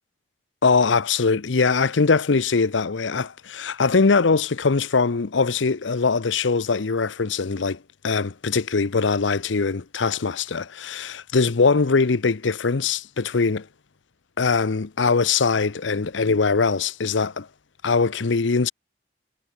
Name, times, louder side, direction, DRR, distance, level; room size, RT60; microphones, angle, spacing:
voice 1, 0.6-7.8 8.0-13.7 14.4-17.5 17.8-18.7, left 4 dB, 85° left, 0.7 m, -21 dB
head